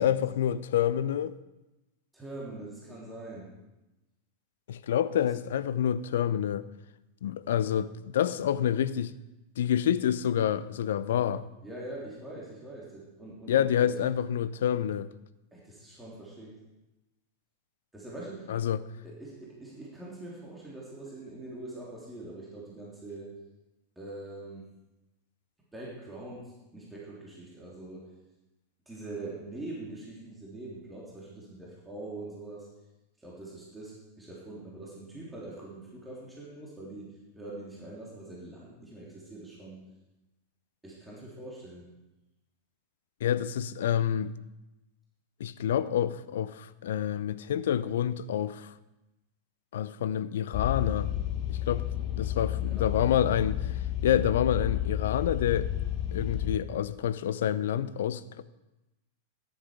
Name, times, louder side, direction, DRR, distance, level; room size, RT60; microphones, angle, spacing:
voice 1, 0.0-1.3 4.7-6.7 7.2-9.1 9.6-11.5 13.5-15.1 18.5-18.8 43.2-44.3 45.4-48.7 49.7-51.1 51.5-55.7 56.1-58.4, left 10 dB, 60° left, 16 dB, 0.5 m, -28 dB
voice 2, 2.1-3.5 5.2-5.3 11.6-13.9 15.5-16.6 17.9-18.5 19.0-23.3 24.0-24.7 25.7-28.1 28.9-32.7 33.2-39.9 40.8-41.9 52.6-53.0, right 2 dB, 10° right, -5 dB, 3.3 m, -43 dB
sound 1, 50.5-56.6, left 12 dB, 40° left, 1.0 m, -31 dB
13.5 x 10.5 x 5.0 m, 0.99 s
figure-of-eight pair, 90°, 0 cm